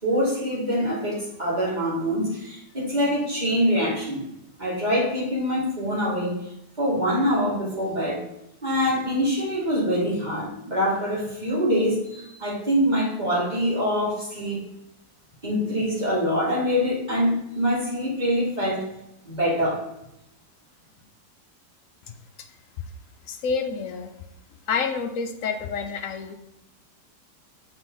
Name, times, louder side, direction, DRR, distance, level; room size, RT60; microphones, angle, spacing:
voice 1, 0.0-4.2 4.6-6.4 6.8-8.2 8.6-14.6 15.4-18.8 19.2-19.8, equal, 25° right, -7 dB, 2.8 m, -24 dB
voice 2, 23.3-24.1 24.7-26.3, left 5 dB, 65° left, 6 dB, 0.9 m, -28 dB
7.1 x 4.3 x 3.8 m, 0.84 s
omnidirectional pair, 1.9 m